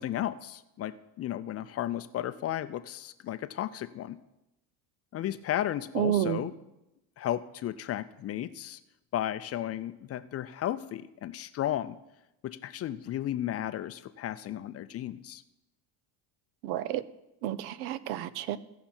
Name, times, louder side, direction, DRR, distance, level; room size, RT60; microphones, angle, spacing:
voice 1, 0.0-4.2 5.1-6.5 7.2-8.8 9.1-12.0 12.4-15.4, left 12 dB, 35° left, 13 dB, 0.4 m, -34 dB
voice 2, 5.9-6.4 16.6-17.0 17.4-18.6, right 11 dB, 85° right, 16 dB, 0.7 m, -30 dB
16.5 x 5.8 x 4.4 m, 0.91 s
supercardioid pair, 115°, 45 cm